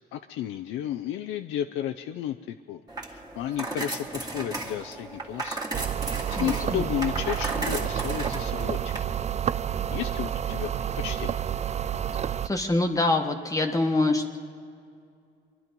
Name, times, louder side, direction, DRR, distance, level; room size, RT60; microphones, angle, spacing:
voice 1, 0.1-2.8 3.1-5.6 6.4-8.9 9.9-11.4, left 11 dB, 90° left, 6 dB, 0.5 m, -32 dB
sound 1, 2.9-9.0, right 2 dB, 20° right, 2.1 m, -35 dB
sound 2, 5.7-12.5, right 9 dB, 35° right, 0.4 m, -29 dB
voice 2, 6.4-6.8 12.4-14.4, left 2 dB, 15° left, 2 dB, 1.2 m, -25 dB
23.5 x 11.5 x 5.3 m, 2.3 s
cardioid pair, 90°, 20 cm